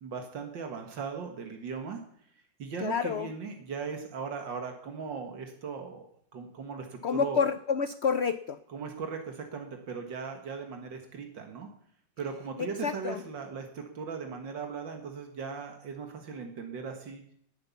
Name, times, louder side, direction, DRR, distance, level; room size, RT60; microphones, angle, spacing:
voice 1, 0.0-2.0 2.6-6.1 6.3-7.4 8.7-11.7 12.2-17.2, right 5 dB, 80° right, 4 dB, 2.3 m, -38 dB
voice 2, 2.8-3.3 7.0-8.6 12.6-13.2, left 6 dB, 65° left, 12 dB, 0.6 m, -29 dB
18.5 x 9.5 x 7.1 m, 0.67 s
omnidirectional pair, 2.0 m